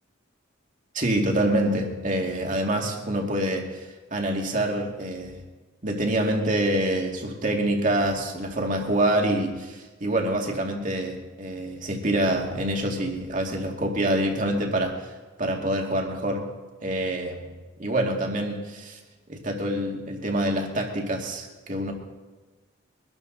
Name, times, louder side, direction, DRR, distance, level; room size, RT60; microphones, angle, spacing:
voice 1, 0.9-5.4 5.8-15.1 15.4-16.5 16.8-19.0 19.3-21.9, right 1 dB, 40° right, 1 dB, 2.3 m, -26 dB
23.5 x 12.5 x 4.0 m, 1.3 s
head